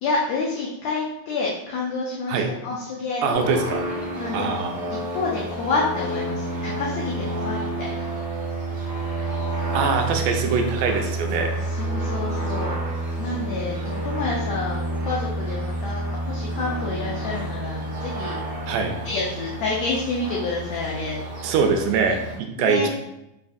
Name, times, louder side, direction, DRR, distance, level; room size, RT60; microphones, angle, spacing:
voice 1, 0.0-3.7 4.2-4.6 4.9-8.0 11.7-12.7 13.2-18.4 19.0-21.2 22.6-22.9, left 3 dB, 90° left, -4 dB, 1.5 m, -28 dB
voice 2, 3.2-3.8 4.3-4.9 9.7-11.5 18.7-18.9 21.4-22.9, right 5 dB, 85° right, 4 dB, 2.1 m, -23 dB
sound 1, 3.3-22.4, right 2 dB, 55° right, 0.7 m, -29 dB
5.5 x 2.3 x 2.5 m, 0.87 s
omnidirectional pair, 3.7 m